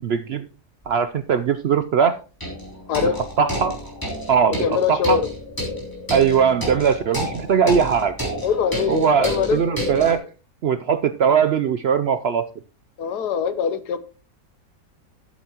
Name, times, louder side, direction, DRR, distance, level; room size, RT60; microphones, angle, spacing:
voice 1, 0.0-0.4 0.9-2.2 3.0-3.1 3.4-3.8 4.3-5.2 6.1-8.1 8.9-10.3 10.6-12.5, right 7 dB, 80° right, 0.5 m, -20 dB
sound 1, 0.8-0.9 2.4-10.2, equal, 10° left, 3.2 m, -30 dB
voice 2, 4.6-5.2 8.4-9.6 13.0-14.0, left 7 dB, 80° left, 1.4 m, -22 dB
13.5 x 8.2 x 2.9 m
omnidirectional pair, 1.7 m